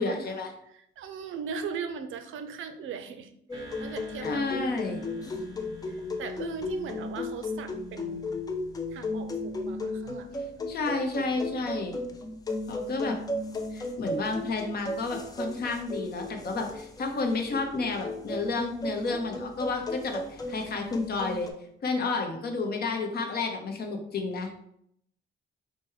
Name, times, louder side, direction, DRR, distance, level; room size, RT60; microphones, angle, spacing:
voice 1, 0.0-0.5 4.2-5.0 10.7-12.0 12.7-13.2 13.7-21.5 21.8-24.5, left 3 dB, 50° left, 4 dB, 0.8 m, -31 dB
voice 2, 0.7-4.5 5.9-8.3 8.9-10.4 11.1-11.6, right 6 dB, 75° right, 8 dB, 0.5 m, -39 dB
sound 1, 3.5-21.5, left 2 dB, 20° left, 0.4 m, -35 dB
sound 2, 3.5-8.0, equal, 20° right, 1.1 m, -51 dB
4.6 x 2.2 x 4.6 m, 0.72 s
cardioid pair, 155°, 21 cm